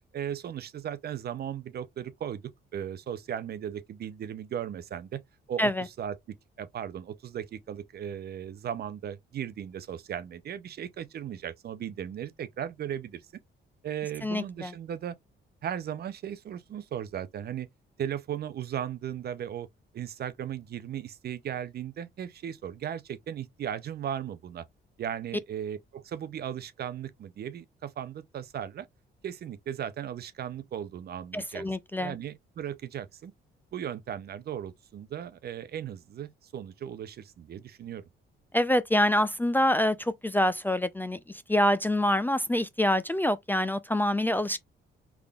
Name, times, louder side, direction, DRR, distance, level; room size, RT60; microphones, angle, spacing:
voice 1, 0.1-2.4 2.7-5.2 5.5-6.1 6.6-13.3 13.8-15.1 15.6-17.7 18.0-19.7 19.9-24.6 25.0-28.9 29.2-31.7 32.0-33.3 33.7-38.0, right 9 dB, 55° right, 0.5 m, -36 dB
voice 2, 14.2-14.7 31.3-32.2 38.5-44.6, left 1 dB, 10° left, 0.4 m, -26 dB
3.6 x 3.4 x 2.3 m
cardioid pair, 90°, 20 cm